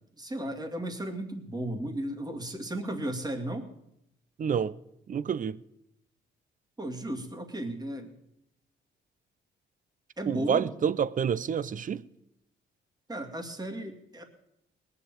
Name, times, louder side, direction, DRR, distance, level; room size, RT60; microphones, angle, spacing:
voice 1, 0.2-3.7 6.8-8.1 10.2-10.7 13.1-14.2, right 1 dB, 20° right, 2.4 m, -35 dB
voice 2, 4.4-4.8 5.1-5.6 10.3-12.0, right 7 dB, 40° right, 0.6 m, -28 dB
19.5 x 6.9 x 9.1 m
cardioid pair, 90°, 20 cm